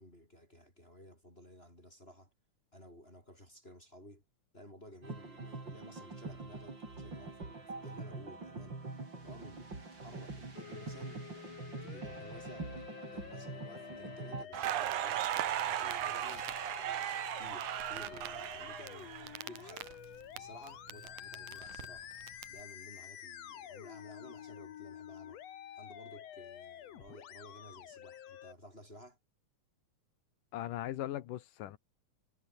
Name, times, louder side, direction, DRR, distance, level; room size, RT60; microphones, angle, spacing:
voice 1, 0.0-2.3 2.7-4.2 4.5-8.8 9.2-12.7 13.1-16.5 16.8-22.1 22.5-25.4 25.7-29.2, equal, 15° left, 8.2 m, -55 dB
sound 1, 5.0-14.5, right 3 dB, 35° right, 5.8 m, -44 dB
Musical instrument, 10.6-28.5, left 10 dB, 60° left, 2.4 m, -49 dB
Crackle, 14.5-20.4 20.7-22.4, right 13 dB, 75° right, 2.6 m, -37 dB
voice 2, 30.5-31.8, left 13 dB, 85° left, 2.8 m, -39 dB
omnidirectional pair, 3.6 m